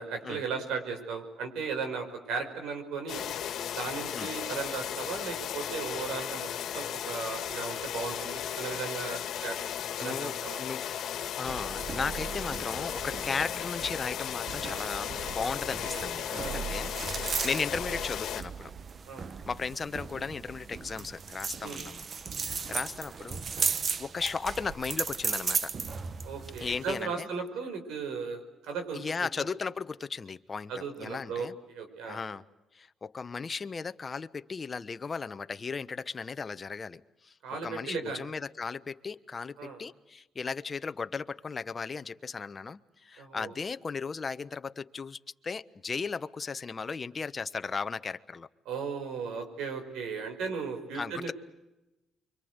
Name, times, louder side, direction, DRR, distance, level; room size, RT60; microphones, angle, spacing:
voice 1, 0.0-3.3 3.8-6.5 6.7-9.6 10.0-10.6 15.8-16.8 17.4-17.5 19.1-19.3 21.6-21.8 26.2-29.0 29.4-29.5 30.7-32.2 37.4-38.3 39.6-39.8 43.2-43.5 48.7-51.3, right 5 dB, 90° right, 5.5 m, -36 dB
sound 1, 3.1-18.4, left 10 dB, 75° left, 1.8 m, -35 dB
voice 2, 10.0-10.9 11.4-18.7 19.5-22.0 22.4-23.4 24.0-25.7 26.6-27.3 28.9-31.5 32.1-32.4 32.7-37.3 37.6-48.5 50.9-51.3, left 5 dB, 35° left, 1.1 m, -36 dB
sound 2, 11.4-27.0, right 5 dB, 45° right, 1.1 m, -36 dB
29.5 x 24.5 x 8.1 m
cardioid pair, 90°, 0 cm